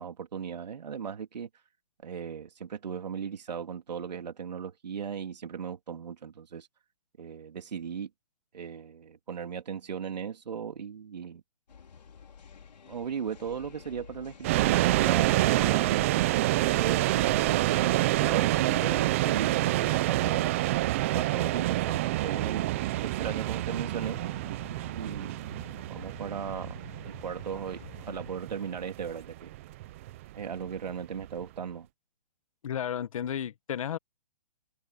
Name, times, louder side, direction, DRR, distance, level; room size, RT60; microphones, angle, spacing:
voice 1, 0.0-1.5 2.0-6.7 7.2-8.1 8.5-11.4 12.9-16.1 16.6-20.5 21.1-24.2 24.8-25.4 25.9-26.8 27.0-29.5 30.3-31.9, right 7 dB, 80° right, 3.2 m, -37 dB
sound 1, 11.7-28.3, left 6 dB, 85° left, 4.8 m, -50 dB
sound 2, 14.4-31.4, right 17 dB, 20° right, 0.5 m, -27 dB
voice 2, 32.6-34.0, left 9 dB, 55° left, 1.4 m, -33 dB
hypercardioid pair, 165°, 21 cm